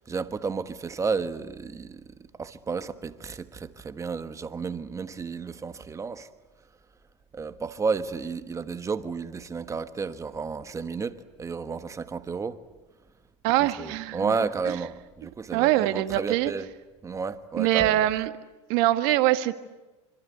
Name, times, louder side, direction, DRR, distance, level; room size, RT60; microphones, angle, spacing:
voice 1, 0.0-2.0 2.4-6.3 7.3-12.6 13.6-16.7 17.0-18.1, right 5 dB, 20° right, 1.3 m, -32 dB
voice 2, 13.4-14.3 15.5-16.5 17.6-18.3 18.7-19.5, right 15 dB, 60° right, 1.8 m, -23 dB
26.0 x 26.0 x 8.3 m
supercardioid pair, 110°, 16 cm